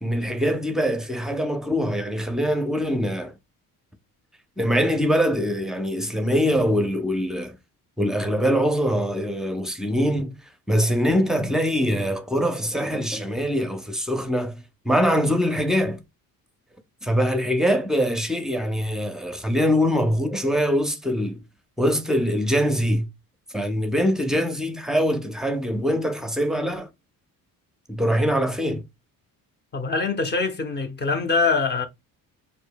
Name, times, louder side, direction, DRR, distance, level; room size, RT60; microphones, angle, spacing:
voice 1, 0.0-3.3 4.6-7.6 8.0-10.4 10.7-16.0 17.0-21.4 21.8-23.1 23.5-26.9 27.9-28.8, equal, ahead, 0.6 m, -23 dB
voice 2, 29.7-31.9, left 4 dB, 30° left, 0.8 m, -23 dB
6.8 x 2.7 x 2.2 m
cardioid pair, 150°, 35 cm